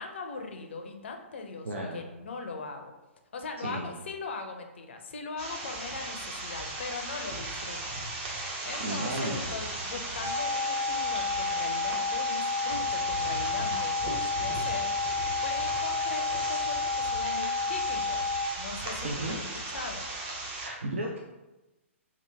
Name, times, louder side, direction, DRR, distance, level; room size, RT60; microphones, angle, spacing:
voice 1, 0.0-2.9 3.3-8.0 8.6-14.9 15.4-18.2 18.6-19.4 19.7-20.0, left 4 dB, 55° left, 4 dB, 0.5 m, -40 dB
voice 2, 1.6-2.0 3.6-3.9 8.8-9.4 19.0-19.4 20.5-21.2, right 1 dB, 65° right, -1 dB, 0.4 m, -34 dB
sound 1, 5.4-20.7, right 2 dB, 30° right, 0.7 m, -36 dB
sound 2, 10.2-18.5, left 4 dB, 15° right, 1.0 m, -30 dB
2.9 x 2.3 x 3.3 m, 1.1 s
figure-of-eight pair, 120°, 7 cm